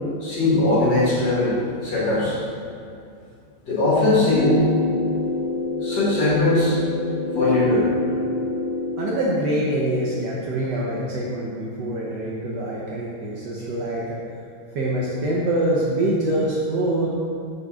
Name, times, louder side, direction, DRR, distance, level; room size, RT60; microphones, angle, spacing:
voice 1, 0.2-1.6 1.8-2.4 3.6-4.6 5.8-6.8 7.4-7.9, left 2 dB, 55° left, -8 dB, 2.2 m, -20 dB
sound 1, 4.3-9.2, left 3 dB, 5° right, 0.5 m, -26 dB
voice 2, 9.0-14.2 14.7-17.1, right 1 dB, 65° right, -4 dB, 1.2 m, -24 dB
5.3 x 5.2 x 3.6 m, 2.5 s
omnidirectional pair, 2.3 m